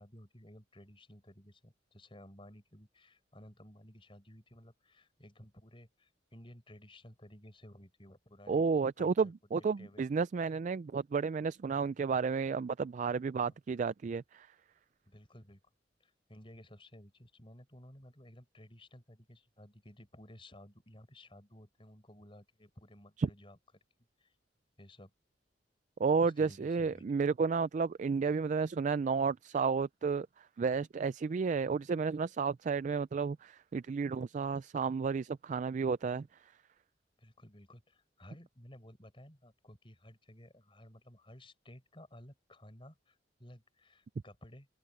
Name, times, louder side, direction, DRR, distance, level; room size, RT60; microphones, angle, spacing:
voice 1, 0.0-8.6 9.0-10.0 13.4-13.6 15.1-15.6 16.0-23.6 24.2-24.3 24.8-25.1 26.2-27.0 37.2-44.7, left 1 dB, 30° left, 5.7 m, -55 dB
voice 2, 8.5-14.5 23.2-23.3 26.0-30.3 30.6-36.3, right 5 dB, 45° right, 0.3 m, -32 dB
open air
head